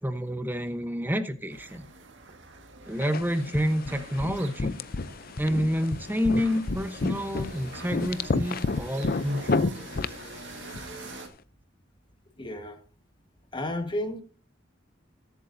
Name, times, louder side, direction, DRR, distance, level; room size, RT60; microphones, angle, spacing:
voice 1, 0.0-1.9 2.9-4.8 5.4-9.9, equal, 10° right, 9 dB, 0.9 m, -29 dB
sound 1, 1.5-11.3, right 3 dB, 70° right, 1.8 m, -45 dB
sound 2, 3.0-11.2, left 3 dB, 50° left, 0.5 m, -31 dB
voice 2, 12.4-12.8 13.5-14.2, left 1 dB, 25° left, 6 dB, 1.5 m, -32 dB
20.5 x 8.3 x 2.7 m, 0.38 s
head